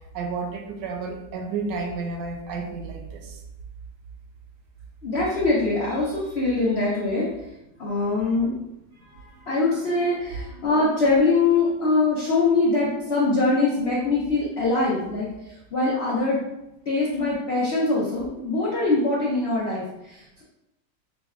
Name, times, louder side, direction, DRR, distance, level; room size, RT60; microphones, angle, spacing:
voice 1, 0.1-3.4, right 4 dB, 75° right, 2 dB, 1.2 m, -31 dB
voice 2, 5.0-7.3 7.8-8.5 9.5-16.4 16.9-20.4, left 3 dB, 90° left, -5 dB, 0.5 m, -23 dB
5.1 x 2.2 x 2.4 m, 0.90 s
omnidirectional pair, 2.0 m